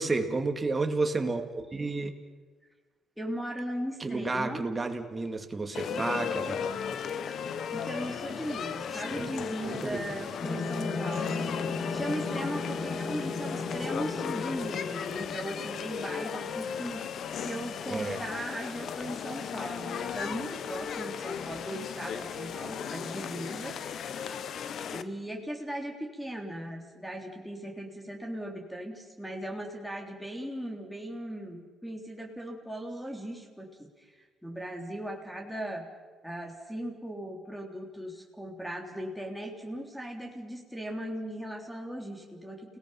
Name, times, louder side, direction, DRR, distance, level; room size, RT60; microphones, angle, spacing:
voice 1, 0.0-2.1 4.0-6.6 8.9-10.3 17.9-18.2, right 3 dB, 25° right, 5 dB, 2.4 m, -31 dB
voice 2, 3.2-4.7 7.7-24.1 24.9-35.9 36.2-42.8, equal, ahead, 2 dB, 3.5 m, -38 dB
sound 1, 5.7-25.0, left 7 dB, 65° left, 1.0 m, -36 dB
sound 2, 10.4-16.7, left 3 dB, 40° left, 2.5 m, -35 dB
29.5 x 18.5 x 5.7 m, 1.4 s
cardioid pair, 90°, 0 cm